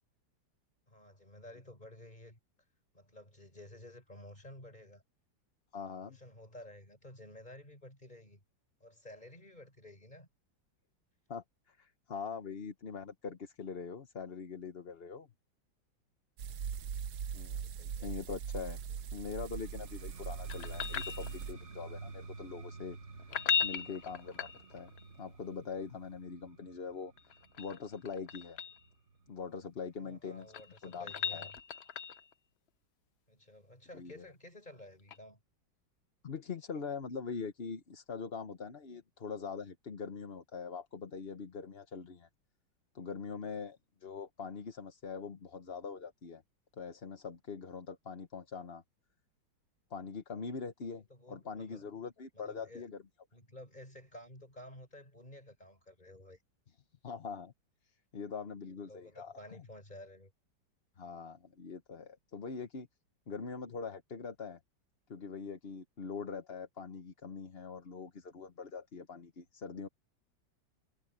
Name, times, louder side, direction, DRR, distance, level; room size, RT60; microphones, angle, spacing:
voice 1, 0.9-2.4 2.9-5.0 5.9-8.4 8.8-10.3 17.2-18.2 30.0-31.5 33.3-35.4 51.1-51.9 52.3-52.9 53.3-56.4 58.8-60.3, left 1 dB, 20° left, 6.3 m, -53 dB
voice 2, 5.7-6.2 11.3-15.3 17.3-18.8 19.1-23.0 23.6-24.9 25.2-27.1 27.6-28.6 29.3-30.5 30.8-31.5 33.9-34.3 36.2-42.3 42.9-46.4 46.8-48.8 49.9-53.0 57.0-57.5 58.1-59.3 61.0-62.9 63.3-64.6 65.1-69.9, left 5 dB, 40° left, 1.1 m, -43 dB
sound 1, 16.4-21.5, right 7 dB, 60° right, 1.4 m, -41 dB
sound 2, 19.4-29.2, right 3 dB, 40° right, 2.0 m, -49 dB
sound 3, 20.5-21.7 23.2-25.0 27.2-28.8 30.2-32.3 35.1-35.2, left 6 dB, 75° left, 0.6 m, -37 dB
omnidirectional pair, 2.0 m